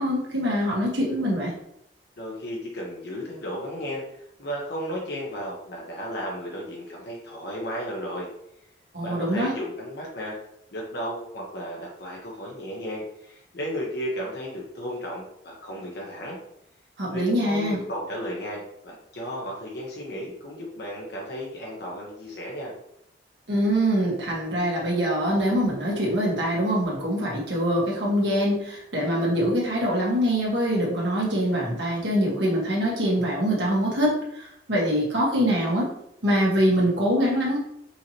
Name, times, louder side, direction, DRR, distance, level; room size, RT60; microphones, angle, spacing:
voice 1, 0.0-1.5 8.9-9.5 17.0-17.8 23.5-35.9 36.2-37.6, equal, 80° right, -4 dB, 1.6 m, -24 dB
voice 2, 2.2-8.3 9.0-10.4 10.7-16.4 17.1-22.7, equal, 65° left, -2 dB, 1.0 m, -34 dB
5.5 x 3.0 x 2.9 m, 0.76 s
head